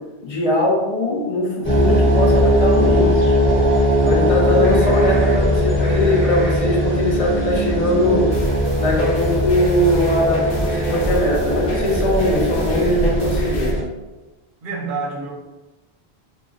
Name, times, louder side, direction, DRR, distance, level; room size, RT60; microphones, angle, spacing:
voice 1, 0.2-3.1 4.0-8.3 8.8-13.7, left 1 dB, 45° left, -2 dB, 0.5 m, -20 dB
sound 1, 1.6-13.8, equal, 10° left, 0.9 m, -19 dB
sound 2, 8.3-13.7, equal, 75° left, 0.9 m, -33 dB
voice 2, 14.6-15.3, right 4 dB, 60° right, 0 dB, 0.7 m, -27 dB
2.4 x 2.0 x 3.7 m, 1.1 s
omnidirectional pair, 1.1 m